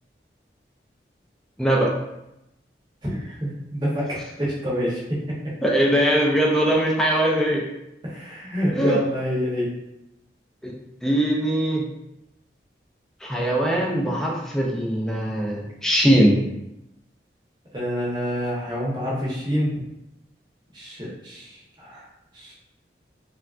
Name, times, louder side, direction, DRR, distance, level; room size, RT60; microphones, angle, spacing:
voice 1, 1.6-1.9 5.6-7.6 8.7-9.0 10.6-10.7 11.0-11.8 13.2-16.4, right 1 dB, 5° left, -2 dB, 0.3 m, -21 dB
voice 2, 3.0-5.2 8.0-9.7 17.7-19.8 20.7-22.0 22.3-22.5, equal, 25° right, -6 dB, 0.8 m, -27 dB
3.2 x 2.3 x 2.3 m, 0.89 s
head